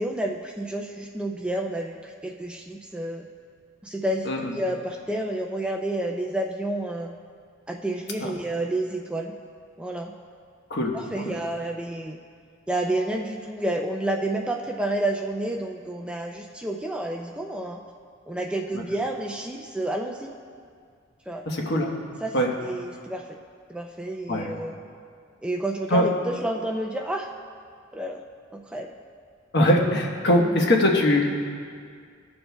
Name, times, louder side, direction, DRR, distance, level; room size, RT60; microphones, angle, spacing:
voice 1, 0.0-3.2 3.8-7.1 7.7-9.3 9.8-10.1 10.9-12.2 12.7-17.8 18.3-20.3 21.3-21.4 22.2-22.4 22.6-23.2 23.7-24.8 25.4-27.3 27.9-28.2 28.5-28.9 30.4-30.6, right 1 dB, 5° right, 1 dB, 0.4 m, -30 dB
voice 2, 21.5-21.9 22.3-22.5 24.3-24.5 25.9-26.1 29.5-31.3, left 1 dB, 55° left, 0 dB, 1.1 m, -21 dB
18.5 x 6.9 x 2.2 m, 2.2 s
head